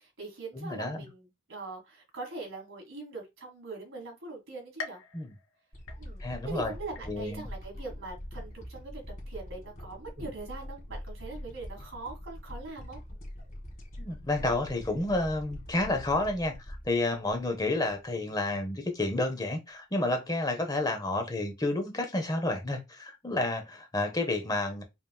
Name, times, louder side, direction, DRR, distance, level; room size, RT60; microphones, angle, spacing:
voice 1, 0.0-5.0 6.0-13.0, right 3 dB, 75° right, 1.8 m, -42 dB
voice 2, 0.5-1.1 5.1-5.3 6.2-6.7 7.1-7.5 10.2-10.3 14.0-24.8, left 2 dB, 20° left, 0.8 m, -30 dB
sound 1, 4.8-6.5 7.0-7.5 8.0-8.1 9.1-9.2, left 5 dB, 85° left, 0.7 m, -44 dB
sound 2, 5.7-18.1 18.5-18.6, equal, 45° left, 1.6 m, -43 dB
5.3 x 2.9 x 2.3 m
head